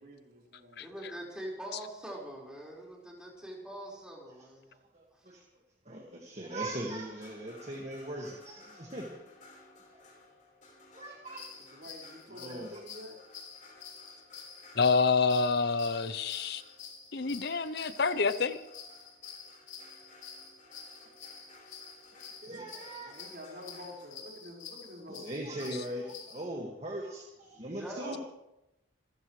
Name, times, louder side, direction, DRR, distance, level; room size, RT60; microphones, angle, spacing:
voice 1, 0.0-0.9 10.0-10.1 11.5-13.2 22.9-25.4 27.5-27.6 27.9-28.2, left 1 dB, 55° right, 5.1 m, -48 dB
voice 2, 0.8-4.7 5.2-5.3 27.5-28.2, right 1 dB, 5° right, 4.8 m, -43 dB
voice 3, 4.9-5.4 5.9-9.1 9.9-10.0 10.9-11.4 12.3-12.8 22.4-23.2 25.2-28.2, right 1 dB, 35° right, 2.0 m, -40 dB
sound 1, 7.0-24.2, left 2 dB, 40° left, 5.1 m, -58 dB
sound 2, 11.3-26.4, left 6 dB, 80° left, 4.6 m, -49 dB
voice 4, 14.7-16.6 17.1-18.6, left 4 dB, 55° left, 0.7 m, -27 dB
26.5 x 14.0 x 3.3 m
head